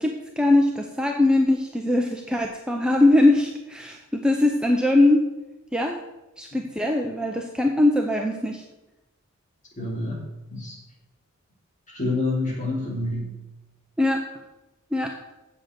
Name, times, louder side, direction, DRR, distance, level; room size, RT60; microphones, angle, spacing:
voice 1, 0.0-5.2 5.7-6.0 6.4-8.6 14.0-14.3 14.9-15.2, left 2 dB, 5° right, 2 dB, 0.6 m, -21 dB
voice 2, 9.8-10.2 10.5-10.8 11.9-13.4, left 2 dB, 35° left, -3 dB, 3.4 m, -28 dB
7.9 x 7.8 x 6.8 m, 1.0 s
head